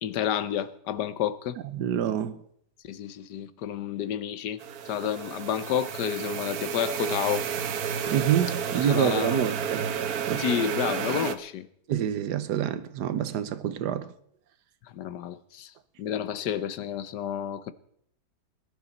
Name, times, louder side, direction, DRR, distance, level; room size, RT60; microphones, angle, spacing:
voice 1, 0.0-1.6 2.8-4.6 4.8-7.5 8.8-9.9 10.4-11.7 14.9-15.7 16.0-17.7, left 10 dB, 90° left, 1.4 m, -30 dB
voice 2, 1.7-2.4 8.1-9.9 10.3-10.4 11.9-14.1, right 10 dB, 90° right, 1.4 m, -27 dB
sound 1, 4.6-11.4, right 7 dB, 70° right, 1.4 m, -31 dB
21.5 x 11.0 x 4.1 m
omnidirectional pair, 1.7 m